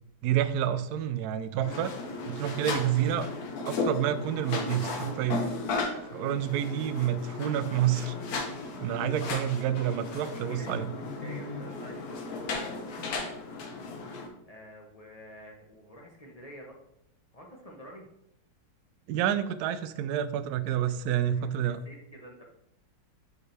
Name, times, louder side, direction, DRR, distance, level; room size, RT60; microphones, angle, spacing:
voice 1, 0.2-1.9 2.2-3.3 3.7-5.4 6.1-8.1 8.8-10.9 19.1-21.8, right 10 dB, 80° right, 11 dB, 0.8 m, -28 dB
sound 1, 1.6-14.3, left 3 dB, 60° left, 1.2 m, -35 dB
voice 2, 6.0-6.4 10.1-12.8 14.0-16.8 17.3-18.1 21.3-21.4 21.8-22.4, equal, 25° left, -1 dB, 0.8 m, -49 dB
6.7 x 5.5 x 3.3 m, 0.76 s
omnidirectional pair, 2.2 m